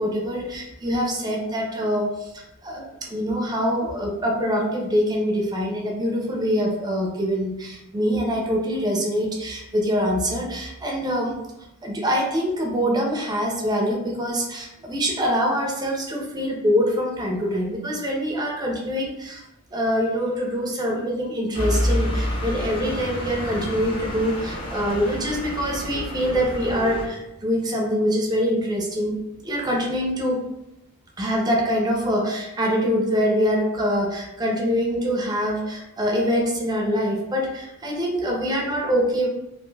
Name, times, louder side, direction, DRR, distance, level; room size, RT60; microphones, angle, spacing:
voice 1, 0.0-11.4 11.8-19.4 19.7-29.1 29.4-30.4 31.2-39.3, equal, 20° right, -1 dB, 0.5 m, -24 dB
sound 1, 21.5-27.1, equal, 25° left, 0.6 m, -28 dB
2.5 x 2.2 x 3.2 m, 0.90 s
head